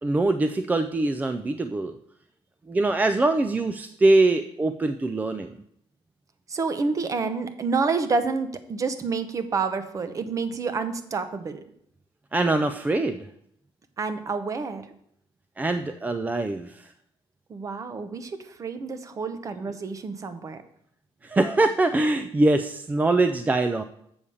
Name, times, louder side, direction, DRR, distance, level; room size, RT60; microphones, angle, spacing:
voice 1, 0.0-2.0 2.7-5.6 12.3-13.3 15.6-16.9 21.2-23.8, right 2 dB, 15° right, 9 dB, 0.3 m, -23 dB
voice 2, 6.5-11.6 14.0-14.9 17.5-20.6, right 4 dB, 35° right, 10 dB, 0.8 m, -28 dB
7.1 x 4.9 x 7.0 m, 0.71 s
cardioid pair, 135°, 10 cm